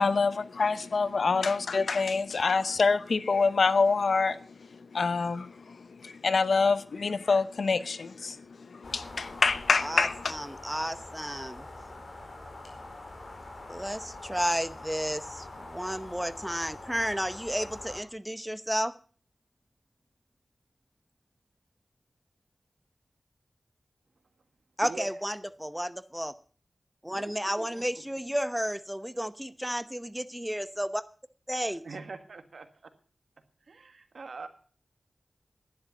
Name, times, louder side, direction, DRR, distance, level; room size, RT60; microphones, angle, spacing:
voice 1, 0.0-10.3, left 4 dB, 80° left, 0.8 m, -26 dB
sound 1, 8.8-18.0, left 2 dB, 60° left, 4.7 m, -44 dB
voice 2, 9.8-11.6 13.7-18.9 24.8-26.3 27.0-31.0 31.5-31.8, equal, 5° right, 0.9 m, -32 dB
voice 3, 24.8-25.2 27.1-28.0 31.8-32.7 33.6-34.5, right 4 dB, 85° right, 1.6 m, -43 dB
11.5 x 10.5 x 7.0 m
wide cardioid pair, 70°, 0 cm